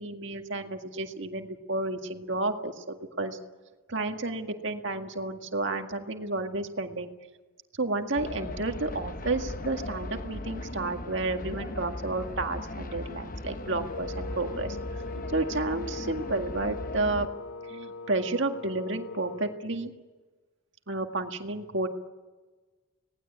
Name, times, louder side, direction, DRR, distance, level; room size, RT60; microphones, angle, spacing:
voice 1, 0.0-3.4 3.9-7.1 7.7-14.8 15.3-17.3 17.7-19.9 20.9-21.9, right 2 dB, 55° right, 5 dB, 2.0 m, -31 dB
sound 1, 8.2-17.3, left 1 dB, 40° left, 1.0 m, -38 dB
Wind instrument woodwind instrument, 13.9-19.7, left 3 dB, 85° left, 1.3 m, -41 dB
26.5 x 19.0 x 8.7 m, 1.3 s
head